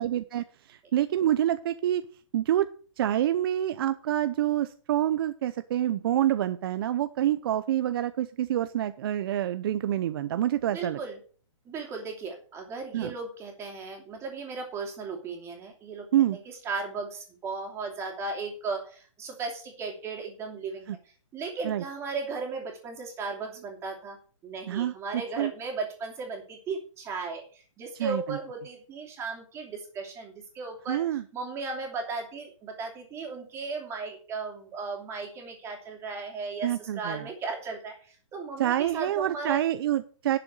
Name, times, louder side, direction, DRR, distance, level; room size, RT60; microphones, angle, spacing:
voice 1, 0.0-2.0 2.3-2.7 3.0-11.0 12.9-13.1 16.1-16.4 20.9-21.0 21.6-21.8 24.7-24.9 25.4-25.5 28.0-28.4 30.9-31.2 36.6-37.3 38.6-40.4, right 12 dB, 45° right, 12 dB, 0.6 m, -27 dB
voice 2, 10.6-11.2 11.6-21.0 21.3-24.2 24.4-31.0 31.3-39.6, right 4 dB, 15° right, 2 dB, 2.9 m, -36 dB
11.0 x 6.9 x 6.4 m, 0.41 s
hypercardioid pair, 155°, 17 cm